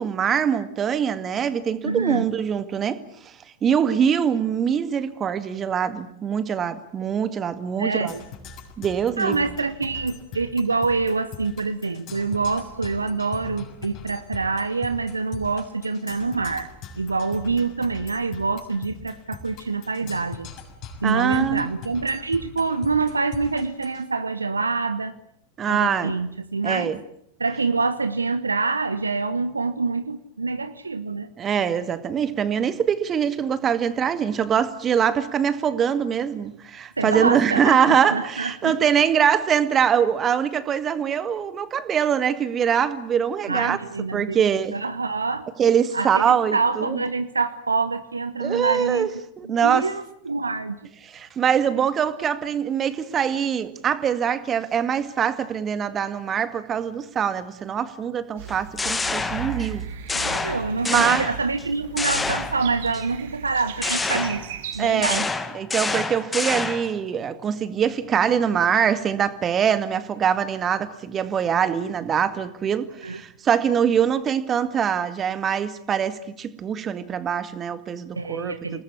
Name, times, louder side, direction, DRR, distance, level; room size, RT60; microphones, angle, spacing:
voice 1, 0.0-3.0 3.6-8.1 8.8-9.4 21.0-21.7 25.6-26.2 26.6-27.0 31.4-43.8 44.1-44.8 45.6-47.0 48.4-49.1 49.4-49.9 51.1-59.9 60.9-61.3 64.8-65.2 65.5-78.8, right 8 dB, 25° right, 2.1 m, -23 dB
voice 2, 1.8-2.3 7.8-8.2 9.2-20.5 21.0-25.1 25.7-26.9 27.4-31.3 37.0-38.7 43.5-44.4 44.7-45.5 45.9-49.1 49.4-50.9 60.1-64.4 64.7-65.3 73.0-73.2 78.1-78.8, right 4 dB, 80° right, 1.3 m, -26 dB
Percussion, 8.1-24.0, left 5 dB, 40° left, 6.9 m, -41 dB
sound 1, 58.4-65.2, right 10 dB, 55° right, 3.0 m, -37 dB
sound 2, 58.5-59.8 60.1-61.6 62.0-63.0 63.8-67.0, left 3 dB, 10° left, 2.0 m, -28 dB
28.5 x 20.0 x 8.4 m
figure-of-eight pair, 90°, 0 cm